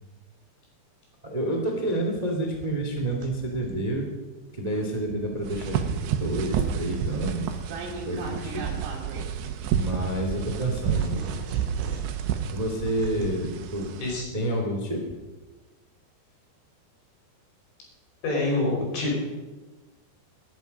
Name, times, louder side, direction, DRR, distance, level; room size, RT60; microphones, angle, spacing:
voice 1, 1.2-4.1 4.5-7.6 8.0-8.7 9.7-11.3 12.5-13.9 14.3-15.0, right 1 dB, 45° right, 1 dB, 0.5 m, -29 dB
sound 1, 1.7-3.9 4.5-10.1 10.5-13.9, right 4 dB, 70° right, 4.3 m, -42 dB
sound 2, 5.4-14.2, right 8 dB, 85° right, 3.2 m, -30 dB
voice 2, 18.2-19.1, left 2 dB, 85° left, -2 dB, 7.4 m, -26 dB
20.5 x 10.5 x 5.2 m, 1.2 s
omnidirectional pair, 5.1 m